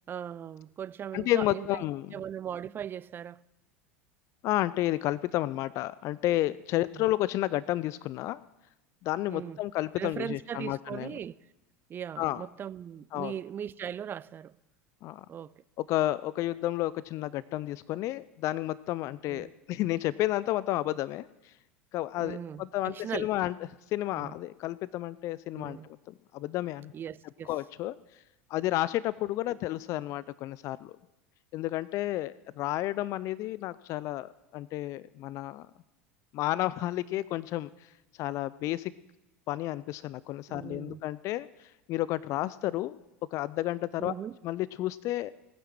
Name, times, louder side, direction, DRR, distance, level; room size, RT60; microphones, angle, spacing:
voice 1, 0.1-1.8 2.1-3.4 6.9-7.0 9.3-9.6 10.0-11.3 11.9-14.6 15.3-15.5 19.3-19.5 22.2-23.3 24.1-24.3 25.5-25.9 26.9-27.5 40.5-41.0 44.0-44.4, right 9 dB, 30° right, 0.5 m, -39 dB
voice 2, 1.1-2.2 4.4-8.4 9.0-11.2 12.2-12.4 13.1-13.3 15.0-15.3 15.8-21.5 21.9-23.6 23.9-26.9 27.4-28.0 28.5-31.0 31.5-35.7 36.3-37.9 38.2-38.9 39.5-43.0 43.3-44.1 44.4-45.3, left 15 dB, 45° left, 0.4 m, -31 dB
18.5 x 9.3 x 6.0 m
hypercardioid pair, 80°, 7 cm